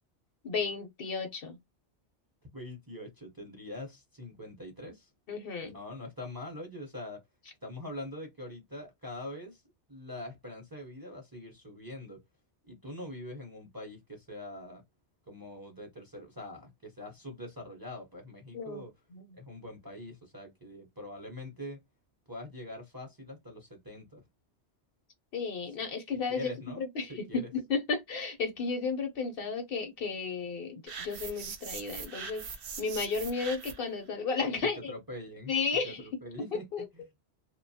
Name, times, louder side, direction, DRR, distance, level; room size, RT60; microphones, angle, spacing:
voice 1, 0.4-1.6 5.3-5.8 18.5-18.8 19.1-19.4 25.3-26.5 26.8-27.3 27.5-32.4 32.8-34.9 35.5-36.0 36.7-36.9, left 5 dB, 60° left, 0.7 m, -33 dB
voice 2, 2.5-5.1 5.6-7.2 7.6-9.6 9.9-12.2 12.7-14.8 15.3-18.9 19.4-21.8 22.3-24.2 26.1-26.8 27.1-27.5 34.9-35.5 35.8-36.7 36.9-37.0, left 1 dB, 25° right, 0.6 m, -43 dB
sound 1, 30.9-33.9, right 5 dB, 60° right, 0.8 m, -41 dB
2.7 x 2.2 x 2.7 m
omnidirectional pair, 1.2 m